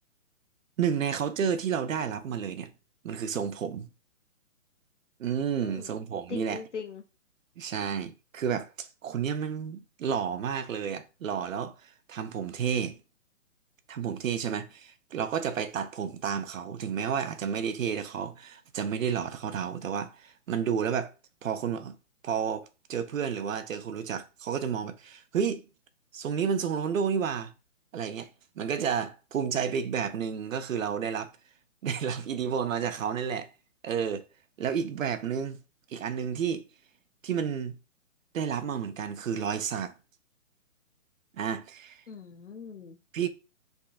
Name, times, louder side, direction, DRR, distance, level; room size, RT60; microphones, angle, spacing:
voice 1, 0.8-2.7 3.0-3.9 5.2-6.6 7.6-11.7 12.1-13.0 13.9-21.1 21.4-21.9 22.2-25.6 26.1-27.5 27.9-28.3 28.6-31.3 31.8-33.5 33.8-34.2 34.6-35.6 35.9-36.6 37.2-37.7 38.3-39.9 41.4-42.0 43.1-43.3, right 7 dB, 70° right, 0.5 m, -31 dB
voice 2, 5.6-5.9 6.3-7.0 42.1-43.0, left 6 dB, 55° left, 0.7 m, -40 dB
3.4 x 2.5 x 2.4 m
hypercardioid pair, 175°, 42 cm